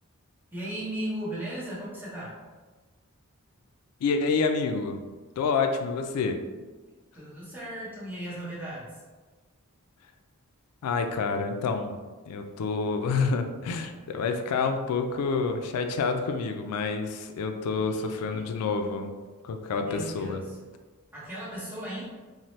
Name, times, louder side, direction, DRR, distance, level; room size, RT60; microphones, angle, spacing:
voice 1, 0.5-2.3 7.1-9.0 17.7-18.5 19.8-20.6 21.1-22.0, right 1 dB, 10° right, -9 dB, 0.9 m, -37 dB
voice 2, 4.0-5.1 5.4-6.4 10.8-19.2 19.4-20.4, left 4 dB, 85° left, 8 dB, 0.3 m, -28 dB
2.7 x 2.1 x 3.0 m, 1.3 s
head